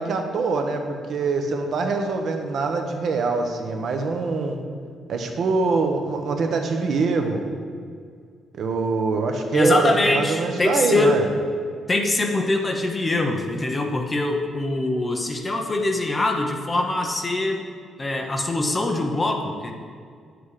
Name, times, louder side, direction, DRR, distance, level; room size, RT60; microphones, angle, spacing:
voice 1, 0.0-4.6 5.1-7.5 8.5-11.3, right 4 dB, 55° right, 4 dB, 1.1 m, -24 dB
voice 2, 9.5-11.2 11.9-17.6 18.0-19.7, left 2 dB, 15° left, 3 dB, 0.8 m, -23 dB
10.0 x 7.9 x 4.9 m, 2.1 s
cardioid pair, 160°, 0 cm